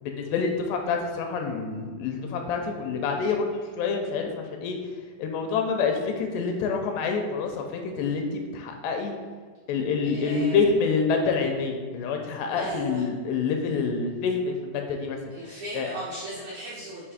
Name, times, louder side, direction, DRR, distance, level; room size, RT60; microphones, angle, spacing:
voice 1, 0.0-4.8 5.2-9.1 9.7-15.2 15.7-15.9, left 5 dB, 80° left, 3 dB, 2.7 m, -27 dB
voice 2, 10.0-10.6 12.5-13.0 15.3-17.1, right 2 dB, 75° right, -9 dB, 1.7 m, -37 dB
7.2 x 2.7 x 4.9 m, 1.5 s
omnidirectional pair, 5.0 m